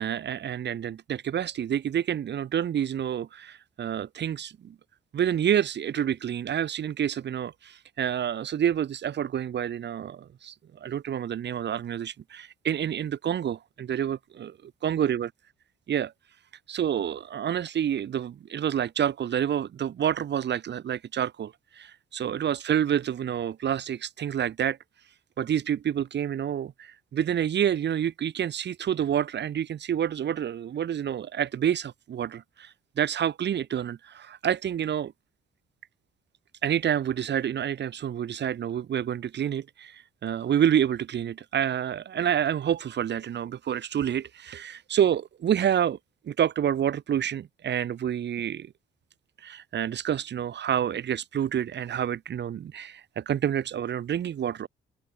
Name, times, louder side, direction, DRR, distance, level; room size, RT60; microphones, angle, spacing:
voice 1, 0.0-4.7 5.1-10.5 10.8-14.6 14.8-15.3 15.9-16.1 16.7-24.8 25.4-35.1 36.6-46.0 46.3-48.7 49.4-54.7, right 9 dB, 60° right, 3.2 m, -28 dB
cardioid pair, 90°, 20 cm